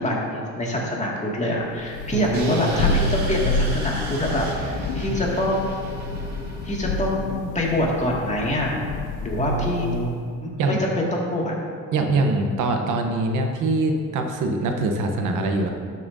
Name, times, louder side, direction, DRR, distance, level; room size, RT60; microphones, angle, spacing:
voice 1, 0.0-5.7 6.6-8.8 9.2-9.9 10.4-11.6, left 1 dB, 25° left, -3 dB, 2.1 m, -25 dB
Thunder, 1.8-10.2, left 2 dB, 85° left, 0.5 m, -29 dB
voice 2, 2.1-2.9 9.4-10.2 10.6-10.8 11.9-15.7, right 2 dB, 80° right, 4 dB, 1.0 m, -24 dB
sound 1, 2.3-7.1, right 2 dB, 65° right, 1.8 m, -35 dB
12.5 x 7.1 x 2.7 m, 2.1 s
cardioid pair, 90°, 30 cm